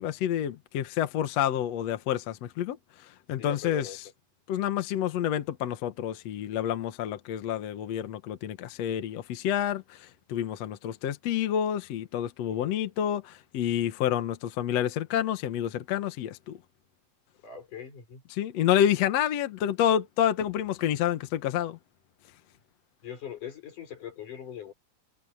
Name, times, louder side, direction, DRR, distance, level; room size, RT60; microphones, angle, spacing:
voice 1, 0.0-2.8 3.3-3.9 4.5-16.6 18.3-21.8, left 10 dB, 65° left, 2.2 m, -28 dB
voice 2, 3.4-4.0 12.5-12.7 17.4-18.2 23.0-24.7, left 8 dB, 90° left, 6.5 m, -41 dB
omnidirectional pair, 3.5 m